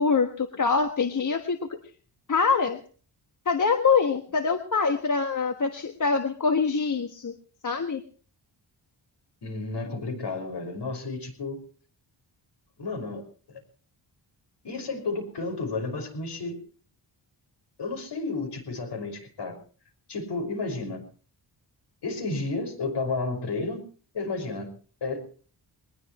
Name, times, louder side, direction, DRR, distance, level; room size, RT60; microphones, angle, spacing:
voice 1, 0.0-1.8 2.3-2.8 3.4-7.3 7.6-8.0, left 5 dB, 40° left, 5 dB, 1.4 m, -24 dB
voice 2, 9.4-11.6 12.8-13.2 13.5-13.6 14.6-16.6 17.8-19.6 20.1-21.0 22.0-23.8 24.1-24.7 25.0-25.4, left 3 dB, 65° left, 5 dB, 5.7 m, -32 dB
21.5 x 20.5 x 3.1 m, 0.40 s
wide cardioid pair, 150°, 45 cm